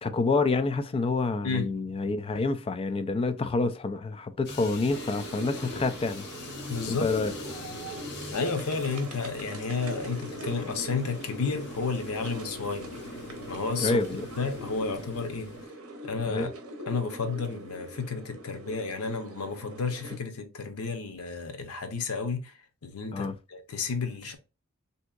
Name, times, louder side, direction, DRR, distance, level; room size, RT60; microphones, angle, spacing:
voice 1, 0.0-6.3 6.9-7.3 13.8-14.2 16.3-16.5 23.1-23.3, left 3 dB, 25° left, 0.3 m, -28 dB
sound 1, 4.4-15.6, left 2 dB, 50° left, 0.8 m, -43 dB
sound 2, 4.9-20.2, right 1 dB, 70° right, 0.7 m, -42 dB
voice 2, 6.7-7.1 8.3-12.9 13.5-14.0 14.4-15.5 16.0-16.5 16.9-22.5 22.8-24.4, left 4 dB, 85° left, 0.7 m, -32 dB
3.5 x 2.7 x 2.3 m
head